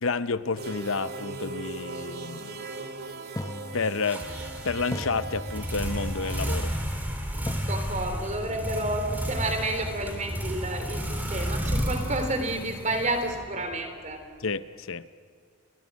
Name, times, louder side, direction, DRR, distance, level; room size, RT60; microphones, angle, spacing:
voice 1, 0.0-2.6 3.7-4.2 4.6-6.7 14.4-15.1, left 4 dB, 70° left, 0.7 m, -30 dB
sound 1, 0.6-6.6, right 3 dB, 50° right, 2.1 m, -39 dB
sound 2, 2.3-2.4 3.4-4.5 4.9-6.2 7.5-11.4, left 1 dB, 15° left, 0.9 m, -40 dB
sound 3, 4.0-13.8, equal, 10° right, 3.5 m, -32 dB
voice 2, 7.7-14.2, right 2 dB, 35° right, 3.6 m, -30 dB
30.0 x 22.0 x 6.3 m
head